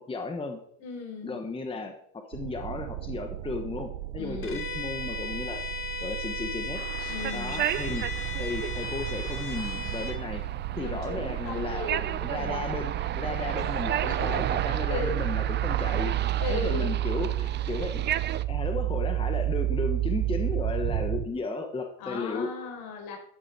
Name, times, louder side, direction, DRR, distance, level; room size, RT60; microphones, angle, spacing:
voice 1, 0.0-0.6 1.2-5.6 6.0-8.1 8.4-10.4 10.8-18.0 18.5-22.5, left 3 dB, 15° left, 5 dB, 1.2 m, -35 dB
voice 2, 0.8-1.4 4.2-4.6 7.1-7.7 10.8-12.8 13.6-13.7 14.0-14.4 14.9-15.2 16.4-16.9 22.0-23.2, left 4 dB, 65° left, 1 dB, 5.2 m, -37 dB
sound 1, 2.3-21.3, right 14 dB, 80° right, 0.8 m, -31 dB
Bowed string instrument, 4.4-10.2, left 4 dB, 30° left, 2.6 m, -36 dB
sound 2, 6.7-18.4, right 11 dB, 30° right, 0.3 m, -34 dB
13.0 x 9.9 x 4.3 m, 0.66 s
cardioid pair, 140°, 41 cm